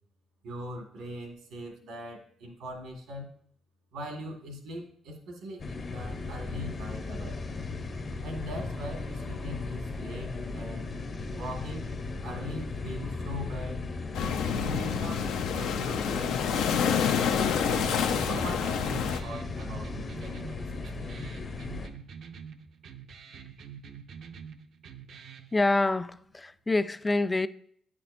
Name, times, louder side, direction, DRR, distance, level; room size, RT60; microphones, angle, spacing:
voice 1, 0.4-3.3 3.9-7.4 8.2-10.9 11.3-11.9 12.2-13.8 14.5-15.3 15.5-17.2 17.7-21.3, equal, 90° right, 1.6 m, -41 dB
sound 1, 5.6-21.9, left 3 dB, 40° left, 0.8 m, -36 dB
sound 2, 14.1-19.2, left 7 dB, 90° left, 0.5 m, -28 dB
sound 3, 17.6-25.6, right 7 dB, 70° right, 0.5 m, -46 dB
voice 2, 25.5-27.5, left 2 dB, 20° left, 0.3 m, -26 dB
9.0 x 6.0 x 2.6 m
cardioid pair, 90°, 0 cm